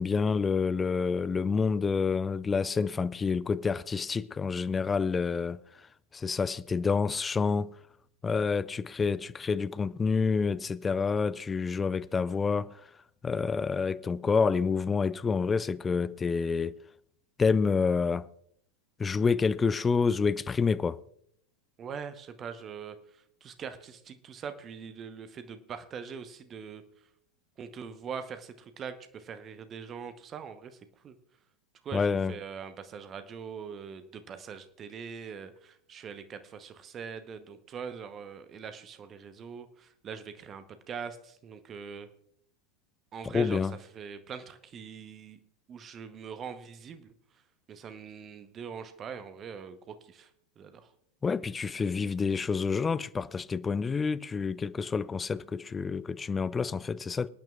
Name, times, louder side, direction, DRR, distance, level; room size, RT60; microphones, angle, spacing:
voice 1, 0.0-5.9 6.1-7.7 8.2-12.8 13.2-16.8 17.4-18.3 19.0-21.0 31.9-32.3 43.2-43.7 51.2-57.3, left 5 dB, 15° left, 0.3 m, -28 dB
voice 2, 21.8-23.0 23.4-26.8 27.6-30.8 31.0-31.1 31.8-42.1 43.1-43.6 43.9-45.4 45.7-47.1 47.7-50.3 50.6-50.9, right 6 dB, 25° right, 0.9 m, -42 dB
26.5 x 9.0 x 2.4 m
figure-of-eight pair, 90°, 0 cm